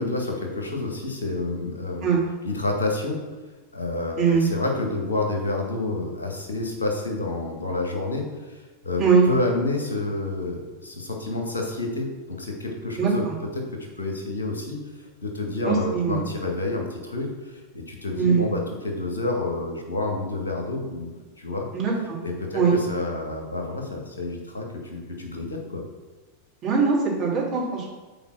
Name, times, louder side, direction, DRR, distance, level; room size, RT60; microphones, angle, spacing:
voice 1, 0.0-2.2 2.4-3.2 3.7-13.2 13.5-13.6 14.0-14.8 15.2-21.1 21.4-21.7 22.2-25.8, left 2 dB, 75° left, 1 dB, 1.8 m, -29 dB
voice 2, 13.0-13.3 15.6-16.2 18.2-18.5 21.7-22.2 22.5-22.7 26.6-27.9, right 5 dB, 35° right, -3 dB, 2.9 m, -21 dB
7.8 x 4.7 x 6.3 m, 1.2 s
figure-of-eight pair, 90°, 0 cm